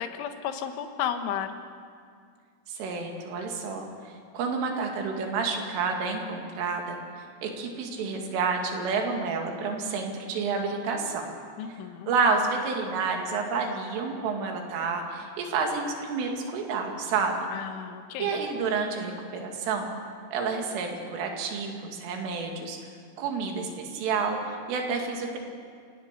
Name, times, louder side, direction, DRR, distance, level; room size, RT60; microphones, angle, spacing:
voice 1, 0.0-1.6 11.6-12.1 17.5-18.4, left 9 dB, 80° left, 7 dB, 3.7 m, -33 dB
voice 2, 2.7-7.0 7.4-11.3 12.1-17.4 18.2-19.9 20.3-22.8 23.2-25.4, right 4 dB, 90° right, 2 dB, 4.9 m, -29 dB
28.5 x 17.5 x 6.8 m, 2.1 s
omnidirectional pair, 5.6 m